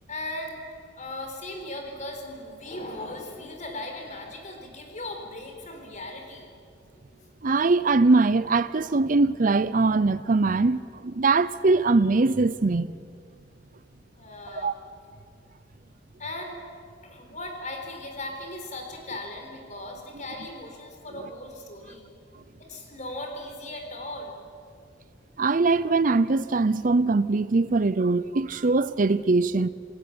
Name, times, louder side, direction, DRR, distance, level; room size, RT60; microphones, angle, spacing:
voice 1, 0.1-0.6 1.0-6.5 14.2-14.7 16.2-16.6 17.0-22.1 22.6-24.5, left 1 dB, 40° left, 4.2 m, -38 dB
voice 2, 7.4-12.9 14.5-14.7 25.4-29.7, right 3 dB, 45° right, 0.6 m, -22 dB
28.0 x 18.0 x 8.7 m
head